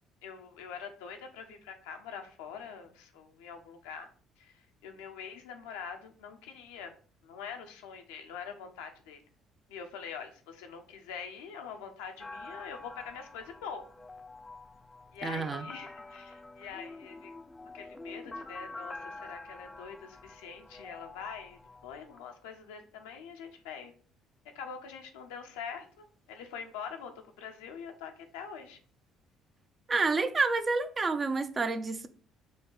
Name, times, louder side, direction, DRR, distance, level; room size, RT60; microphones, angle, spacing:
voice 1, 0.2-4.1 4.4-6.9 7.2-9.2 9.7-13.8 15.1-17.3 17.7-23.9 24.5-27.1 27.4-28.8, left 6 dB, 75° left, 0.6 m, -44 dB
sound 1, 12.2-22.2, left 2 dB, 25° left, 0.4 m, -47 dB
voice 2, 15.2-15.7 29.9-32.1, right 4 dB, 35° right, 0.5 m, -29 dB
5.1 x 2.3 x 3.7 m
hypercardioid pair, 55°, 0 cm